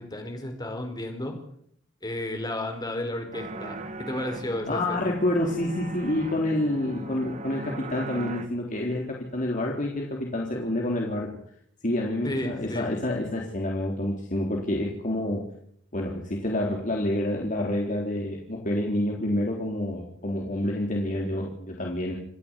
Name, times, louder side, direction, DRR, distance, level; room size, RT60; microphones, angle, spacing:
voice 1, 0.0-1.3 2.0-5.1 12.2-12.9, left 1 dB, 20° left, 4 dB, 4.6 m, -33 dB
sound 1, 3.3-8.5, right 2 dB, 40° right, 2.2 m, -38 dB
voice 2, 4.7-11.3 11.8-15.4 15.9-22.2, left 1 dB, 45° left, -1 dB, 3.8 m, -28 dB
28.0 x 11.5 x 9.9 m, 0.68 s
head